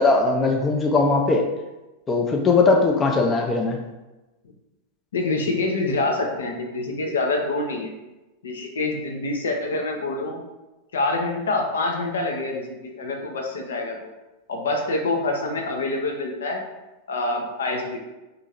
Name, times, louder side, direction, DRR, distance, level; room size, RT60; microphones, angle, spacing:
voice 1, 0.0-1.5 2.1-3.8, left 3 dB, 20° left, 1 dB, 0.5 m, -19 dB
voice 2, 5.1-7.9 8.4-10.4 10.9-14.1 14.5-16.6 17.1-18.0, left 2 dB, 65° left, 2 dB, 0.6 m, -26 dB
2.7 x 2.6 x 4.3 m, 1.1 s
figure-of-eight pair, 90°, 0 cm